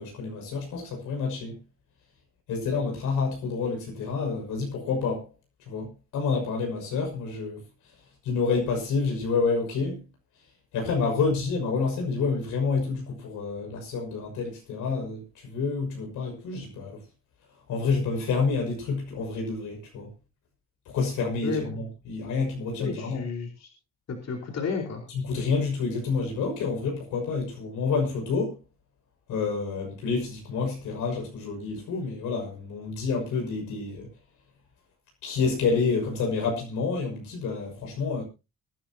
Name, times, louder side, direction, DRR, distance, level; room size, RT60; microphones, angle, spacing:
voice 1, 0.0-1.6 2.5-5.3 5.7-7.6 8.2-10.0 10.7-17.0 17.7-20.1 20.9-23.2 25.2-28.5 29.3-34.1 35.2-38.2, left 4 dB, 90° left, 6.3 m, -28 dB
voice 2, 22.8-23.7 24.1-25.0, left 5 dB, 60° left, 4.6 m, -32 dB
23.5 x 10.5 x 2.9 m
cardioid pair, 90°, 30 cm